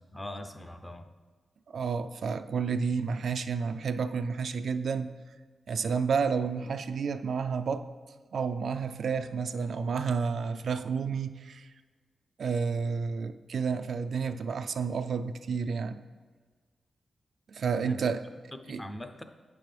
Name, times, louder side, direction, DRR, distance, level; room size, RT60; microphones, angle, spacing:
voice 1, 0.1-1.1 17.8-18.1 18.7-19.2, left 1 dB, 15° left, 7 dB, 0.5 m, -41 dB
voice 2, 1.7-5.1 5.7-7.9 8.3-11.7 12.4-16.0 17.5-18.2 18.7-18.8, right 5 dB, 70° right, 10 dB, 0.3 m, -30 dB
8.3 x 6.0 x 3.3 m, 1.5 s
cardioid pair, 80°, 0 cm